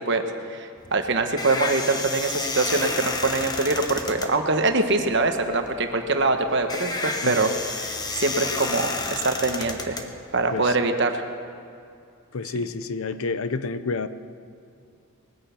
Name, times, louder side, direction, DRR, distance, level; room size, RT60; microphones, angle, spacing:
voice 1, 0.0-10.0 10.3-11.2, right 3 dB, 55° right, 6 dB, 1.2 m, -24 dB
sound 1, 0.8-10.7, left 3 dB, 20° left, 1.0 m, -31 dB
voice 2, 12.3-14.1, left 4 dB, 75° left, 13 dB, 0.7 m, -29 dB
20.0 x 10.0 x 7.0 m, 2.4 s
head